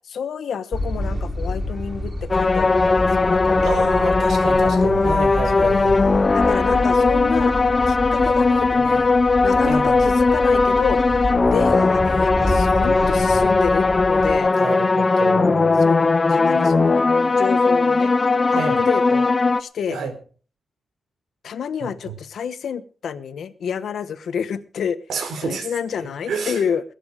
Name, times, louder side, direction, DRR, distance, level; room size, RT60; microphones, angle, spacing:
voice 1, 0.1-3.8 5.5-5.8 6.3-7.5 7.9-9.1 9.4-11.2 11.5-14.5 15.8-17.0 17.4-18.1 18.5-19.3 19.6-20.0 21.4-25.0 25.4-26.8, left 7 dB, 70° left, 12 dB, 1.1 m, -28 dB
sound 1, 0.7-14.4, left 1 dB, 10° right, 6.8 m, -29 dB
sound 2, 2.3-19.6, left 3 dB, 25° left, 0.6 m, -18 dB
voice 2, 3.6-6.0 9.6-10.1 14.4-15.9 18.5-18.8 19.9-20.1 21.8-22.1 25.1-25.7 26.3-26.6, right 4 dB, 90° right, 8 dB, 4.1 m, -29 dB
21.0 x 9.5 x 5.0 m, 0.41 s
wide cardioid pair, 175°, 0 cm